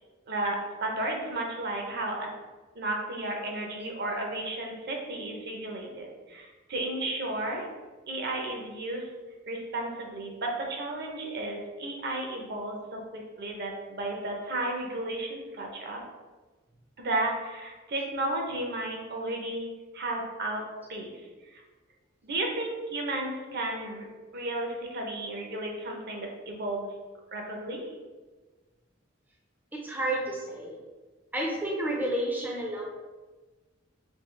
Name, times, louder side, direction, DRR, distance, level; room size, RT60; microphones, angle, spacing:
voice 1, 0.3-2.3 2.7-7.7 8.1-9.1 9.5-16.0 17.0-19.7 19.9-20.6 20.9-21.6 22.2-24.1 24.3-26.9 27.3-27.9, right 2 dB, 55° right, 1 dB, 0.6 m, -33 dB
voice 2, 29.7-30.8 31.3-32.8, right 1 dB, 10° right, -2 dB, 0.5 m, -30 dB
3.6 x 2.8 x 3.1 m, 1.3 s
head